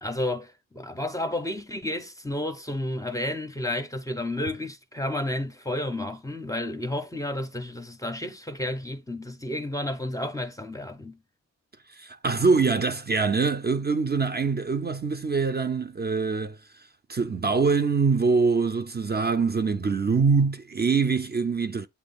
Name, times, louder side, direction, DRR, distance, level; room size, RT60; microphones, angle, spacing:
voice 1, 0.0-11.2, left 1 dB, 10° left, 0.6 m, -31 dB
voice 2, 12.0-16.6 17.1-21.9, right 4 dB, 35° right, 0.6 m, -24 dB
8.4 x 2.8 x 4.2 m
wide cardioid pair, 145°, 29 cm